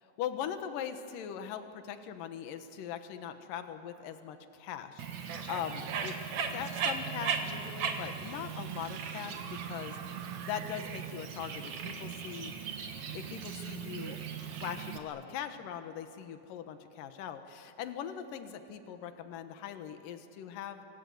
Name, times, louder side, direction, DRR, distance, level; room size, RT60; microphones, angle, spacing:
voice 1, 0.2-6.1 6.5-12.5 13.1-14.2 14.6-20.9, left 9 dB, 70° left, 8 dB, 2.8 m, -41 dB
Bird, 5.0-15.0, right 6 dB, 55° right, 2.7 m, -38 dB
sound 1, 5.2-11.0, right 9 dB, 70° right, 2.8 m, -51 dB
26.0 x 25.5 x 8.0 m, 2.8 s
omnidirectional pair, 4.3 m